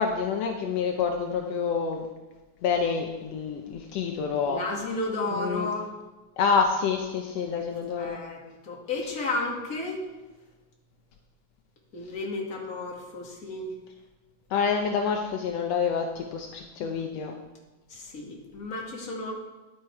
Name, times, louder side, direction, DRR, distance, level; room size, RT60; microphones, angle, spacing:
voice 1, 0.0-2.1 2.6-4.6 5.4-5.7 6.4-8.2 14.5-17.4, left 6 dB, 80° left, 3 dB, 1.4 m, -27 dB
voice 2, 4.5-6.0 7.5-7.6 8.0-10.0 11.9-13.7 16.8-16.9 17.9-19.3, left 2 dB, 30° left, -2 dB, 2.0 m, -33 dB
11.5 x 9.6 x 4.7 m, 1.2 s
omnidirectional pair, 3.9 m